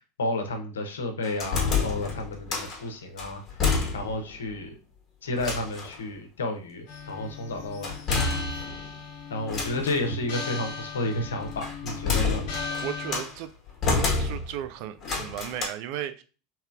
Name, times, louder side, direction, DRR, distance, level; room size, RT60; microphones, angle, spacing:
voice 1, 0.2-3.4 3.9-4.7 5.2-7.9 9.3-12.4, left 2 dB, 75° left, 6 dB, 0.6 m, -31 dB
sound 1, 1.2-2.8 3.2-4.3 4.6-4.7 5.4-6.0 7.8-8.9 9.5-10.1 11.2-13.4 13.8-14.7 15.0-15.7, left 4 dB, 30° left, 1.1 m, -28 dB
sound 2, 6.9-13.2, left 5 dB, 55° left, 0.9 m, -37 dB
voice 2, 12.8-13.5 13.9-16.2, right 11 dB, 55° right, 11 dB, 0.3 m, -35 dB
3.1 x 2.9 x 2.3 m, 0.34 s
figure-of-eight pair, 80°, 0 cm